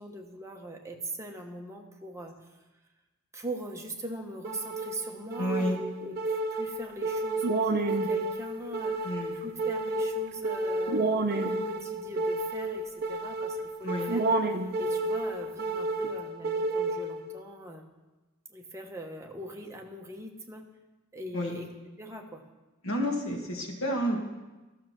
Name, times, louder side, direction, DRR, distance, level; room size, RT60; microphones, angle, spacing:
voice 1, 0.0-2.3 3.3-17.8 18.5-20.7 21.1-21.7 22.0-22.4, right 1 dB, 15° right, 2 dB, 1.0 m, -41 dB
sound 1, 4.4-17.4, right 2 dB, 45° right, 0.6 m, -30 dB
voice 2, 5.4-5.8 9.0-9.4 13.8-14.1 21.3-21.6 22.8-24.2, equal, 70° left, 0 dB, 2.0 m, -30 dB
13.0 x 6.6 x 5.9 m, 1.1 s
head